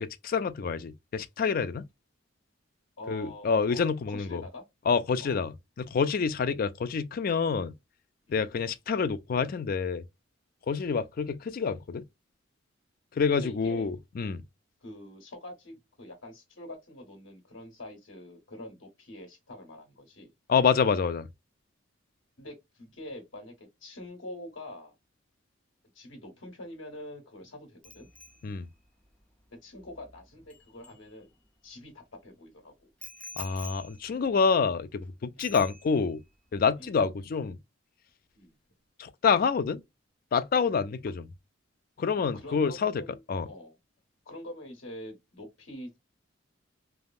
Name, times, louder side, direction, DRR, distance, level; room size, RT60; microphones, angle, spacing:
voice 1, 0.0-1.9 3.1-4.4 4.9-7.7 8.3-10.0 10.7-12.0 13.1-14.4 20.5-21.3 28.4-28.7 33.4-36.2 36.5-37.6 39.0-39.8 40.3-41.3 42.0-42.9 43.3-43.5, left 5 dB, 45° left, 0.3 m, -27 dB
voice 2, 3.0-4.6 5.2-5.4 7.5-7.7 8.3-8.5 13.3-13.9 14.8-20.3 22.4-24.9 25.9-28.1 29.6-31.3 31.6-32.9 35.3-35.6 36.8-36.9 38.3-38.5 42.3-43.8 44.2-46.0, left 1 dB, 75° left, 1.4 m, -45 dB
Bicycle bell, 27.8-31.7 33.0-35.0 35.4-36.3 36.5-36.8, equal, 5° left, 0.7 m, -49 dB
3.4 x 2.1 x 2.4 m
head